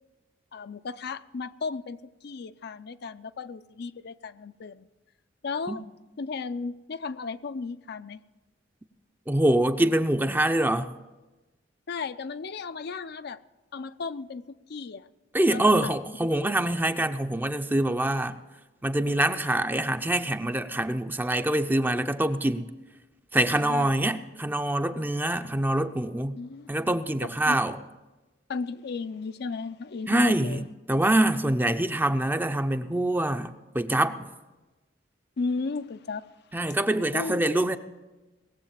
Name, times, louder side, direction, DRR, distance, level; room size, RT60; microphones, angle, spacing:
voice 1, 0.5-4.9 5.4-5.9 6.2-8.2 11.9-13.4 13.7-14.4 14.7-15.1 15.5-15.9 23.4-24.0 26.4-26.7 27.2-27.6 28.5-30.7 35.4-36.3 37.1-37.4, left 4 dB, 60° left, 0.5 m, -35 dB
voice 2, 9.3-10.9 15.3-18.4 18.8-22.7 23.3-26.4 26.7-27.8 30.1-30.6 30.9-34.3 36.5-37.8, right 1 dB, 10° right, 0.5 m, -25 dB
19.0 x 7.7 x 7.4 m
head